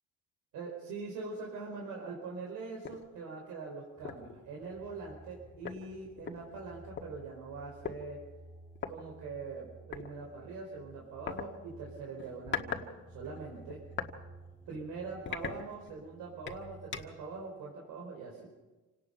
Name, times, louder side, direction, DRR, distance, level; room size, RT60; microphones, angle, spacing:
voice 1, 0.5-8.2 8.9-13.8 14.7-18.5, right 4 dB, 80° right, -1 dB, 4.9 m, -43 dB
sound 1, 2.8-3.0 3.5-3.6 4.0-4.3 5.3-5.4 5.6-7.1 7.8-8.0 8.8-8.9 9.9-10.1 11.3-11.5 12.2-12.9 13.2-14.2 14.6-14.8 15.3-16.1 16.5-17.3, left 7 dB, 35° left, 1.6 m, -40 dB
sound 2, 4.0-17.4, right 2 dB, 5° left, 2.1 m, -54 dB
28.0 x 18.0 x 5.5 m, 1.2 s
cardioid pair, 150°, 32 cm